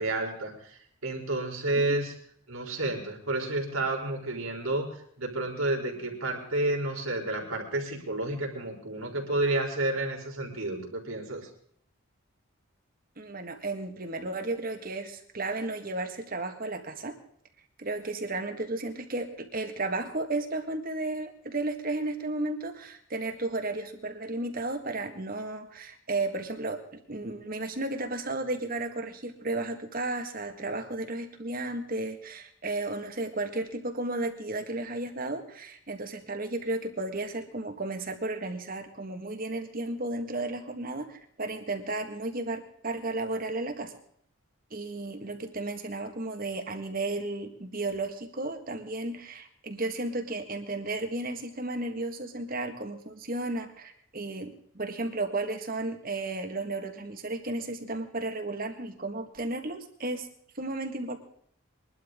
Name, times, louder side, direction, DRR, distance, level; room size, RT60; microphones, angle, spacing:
voice 1, 0.0-2.1 2.5-11.5, right 2 dB, 75° right, 0 dB, 3.9 m, -30 dB
voice 2, 13.2-17.2 17.8-44.0 44.7-60.3 60.6-61.2, right 2 dB, 40° right, 6 dB, 1.8 m, -33 dB
22.5 x 12.0 x 3.8 m, 0.66 s
head